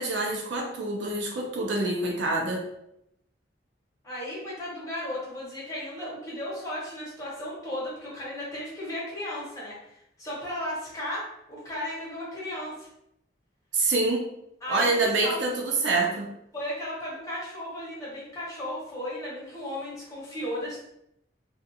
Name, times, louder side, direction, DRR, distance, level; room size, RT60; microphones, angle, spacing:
voice 1, 0.0-2.6 13.7-14.3 14.7-16.3, right 2 dB, 85° right, 0 dB, 0.6 m, -26 dB
voice 2, 4.0-12.9 14.6-15.6 16.5-20.8, left 1 dB, 20° left, -7 dB, 0.9 m, -35 dB
2.5 x 2.4 x 2.7 m, 0.80 s
head